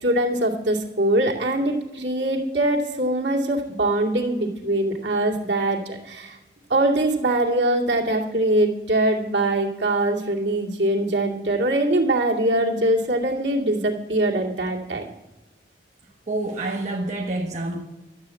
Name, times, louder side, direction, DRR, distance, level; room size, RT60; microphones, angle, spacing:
voice 1, 0.0-6.4 6.7-15.0, right 1 dB, 80° right, -2 dB, 2.5 m, -22 dB
voice 2, 16.3-17.8, right 2 dB, 40° right, 1 dB, 1.2 m, -27 dB
12.0 x 7.5 x 8.4 m, 1.1 s
head